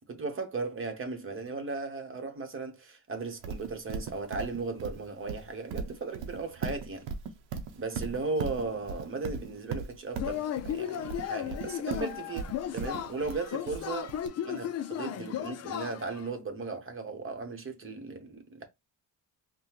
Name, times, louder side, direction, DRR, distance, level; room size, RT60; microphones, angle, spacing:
voice 1, 0.1-7.1 7.8-14.1 14.5-18.6, right 3 dB, 30° right, 1.0 m, -36 dB
Livestock farm animals working animals, 3.4-14.3, right 5 dB, 85° right, 0.8 m, -38 dB
Yell / Cheering, 10.2-16.3, left 10 dB, 40° left, 0.4 m, -35 dB
5.5 x 2.2 x 3.0 m
cardioid pair, 130°, 42 cm